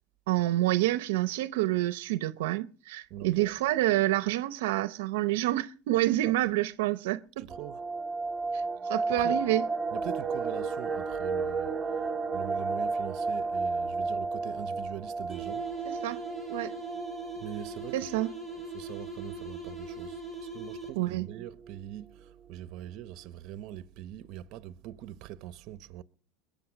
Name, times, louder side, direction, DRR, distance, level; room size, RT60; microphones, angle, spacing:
voice 1, 0.3-7.5 8.5-9.6 16.0-16.2 16.5-16.7 17.9-18.3 21.0-21.3, right 16 dB, 85° right, 0.7 m, -28 dB
voice 2, 3.1-3.6 6.3-6.4 7.4-7.8 9.1-9.4 9.9-15.7 17.4-18.3 18.5-26.0, right 12 dB, 55° right, 0.9 m, -43 dB
sound 1, 7.5-18.3 18.6-18.7 19.0-19.2 19.7-20.1 20.6-20.7 20.9-21.4 21.7-21.8, right 4 dB, 5° right, 2.0 m, -33 dB
sound 2, 15.3-21.2, right 3 dB, 15° left, 4.8 m, -40 dB
22.0 x 8.5 x 6.0 m
supercardioid pair, 135°, 0 cm